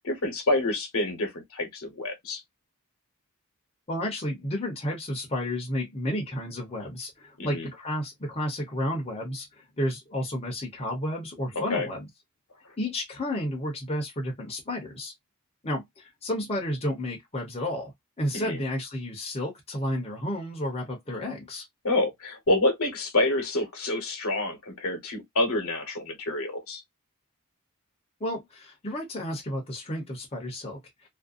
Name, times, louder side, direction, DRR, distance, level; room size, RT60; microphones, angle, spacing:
voice 1, 0.0-2.4 7.4-7.7 11.7-11.9 18.3-18.6 21.8-26.8, left 2 dB, 65° left, 1.0 m, -27 dB
voice 2, 3.9-12.1 12.8-15.1 15.6-17.9 18.2-21.6 28.2-30.8, left 1 dB, 25° left, 0.8 m, -31 dB
2.6 x 2.1 x 2.4 m
head